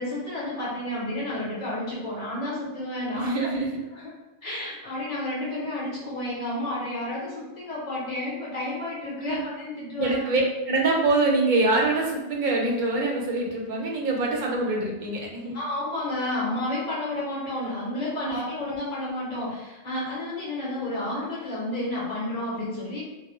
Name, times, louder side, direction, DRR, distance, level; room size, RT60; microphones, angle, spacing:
voice 1, 0.0-3.5 3.9-4.1 4.4-10.2 15.5-23.0, left 1 dB, 45° left, -7 dB, 1.0 m, -31 dB
voice 2, 3.1-3.8 9.2-9.4 10.0-15.6 18.2-18.4, right 2 dB, 60° right, -1 dB, 0.6 m, -25 dB
2.1 x 2.0 x 3.0 m, 1.1 s
omnidirectional pair, 1.0 m